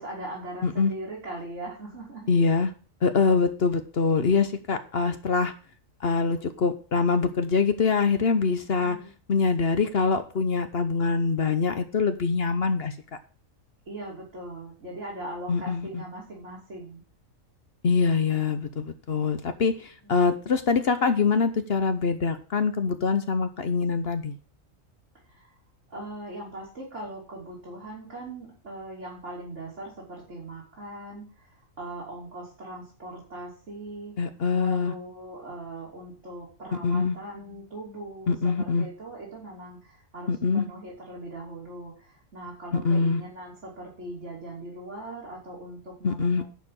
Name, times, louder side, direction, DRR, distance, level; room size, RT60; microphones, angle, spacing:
voice 1, 0.0-2.3 8.8-9.1 13.8-17.0 20.0-20.2 25.2-25.6 25.9-34.1 34.5-46.4, right 1 dB, 60° right, -5 dB, 3.4 m, -40 dB
voice 2, 2.3-2.7 3.0-5.5 6.0-9.0 9.3-12.9 15.5-16.0 17.8-24.3 34.2-34.9 36.8-37.2 38.3-38.9 40.3-40.6 42.7-43.2 46.0-46.4, left 4 dB, 50° left, 9 dB, 1.1 m, -24 dB
10.5 x 5.0 x 7.6 m, 0.38 s
omnidirectional pair, 1.4 m